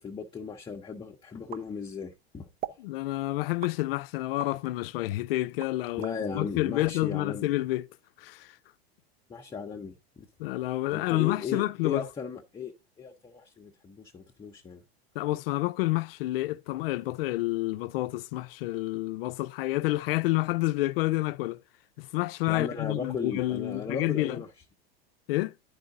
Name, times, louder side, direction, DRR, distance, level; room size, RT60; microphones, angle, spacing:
voice 1, 0.0-2.5 6.0-7.5 9.3-10.3 10.9-14.8 22.5-24.5, left 6 dB, 15° left, 0.8 m, -36 dB
sound 1, 1.5-2.2 2.6-2.9 3.6-4.6 5.1-6.2, right 10 dB, 30° right, 0.6 m, -41 dB
voice 2, 2.8-7.9 8.2-8.6 10.4-12.1 15.1-21.6 22.0-24.4 25.3-25.5, left 18 dB, 65° left, 0.5 m, -29 dB
10.5 x 4.8 x 3.7 m
hypercardioid pair, 100°, 31 cm